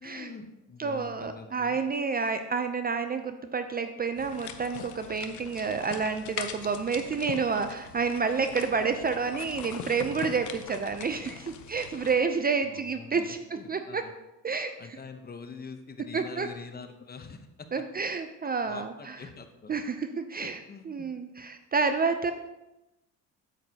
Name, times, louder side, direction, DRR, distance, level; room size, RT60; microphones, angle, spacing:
voice 1, 0.0-1.8 12.7-14.1 14.8-17.7 18.7-19.7 20.4-21.1, left 5 dB, 25° left, 7 dB, 0.9 m, -44 dB
voice 2, 0.8-13.4 13.7-14.0 14.4-14.7 16.1-16.5 17.7-19.2 19.7-22.3, right 5 dB, 25° right, 8 dB, 0.5 m, -29 dB
sound 1, 4.2-12.2, left 8 dB, 55° left, 0.8 m, -42 dB
8.6 x 8.0 x 2.8 m, 0.96 s
supercardioid pair, 90°, 36 cm